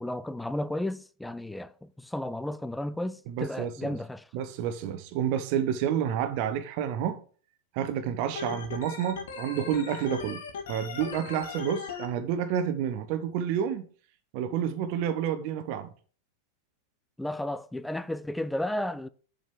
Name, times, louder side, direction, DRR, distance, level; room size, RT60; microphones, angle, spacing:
voice 1, 0.0-4.2 17.2-19.1, left 1 dB, 5° left, 0.5 m, -33 dB
voice 2, 3.3-4.0 4.3-7.2 7.7-10.4 10.7-13.9 14.3-15.9, right 9 dB, 45° right, 1.1 m, -29 dB
Organ, 8.4-12.1, left 5 dB, 60° left, 1.4 m, -38 dB
7.5 x 5.1 x 6.1 m
figure-of-eight pair, 90°, 0 cm